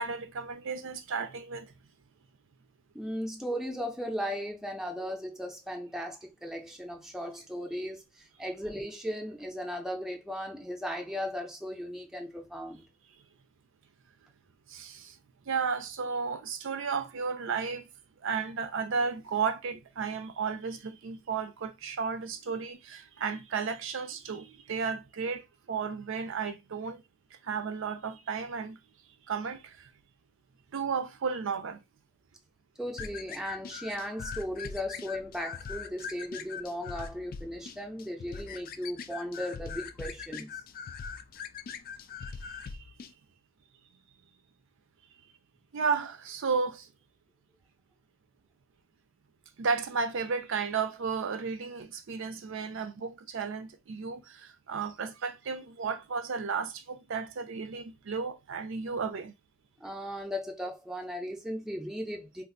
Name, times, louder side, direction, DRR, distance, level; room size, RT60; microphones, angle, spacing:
voice 1, 0.0-1.7 14.7-15.1 15.5-17.9 18.2-27.0 27.4-28.8 29.3-29.9 30.7-31.8 42.4-42.8 45.7-46.9 49.6-59.3, right 5 dB, 65° right, 0.5 m, -33 dB
voice 2, 2.9-12.8 32.8-40.6 59.8-62.4, equal, ahead, 0.6 m, -37 dB
sound 1, 33.0-43.1, left 6 dB, 45° left, 0.3 m, -42 dB
2.5 x 2.5 x 3.7 m
head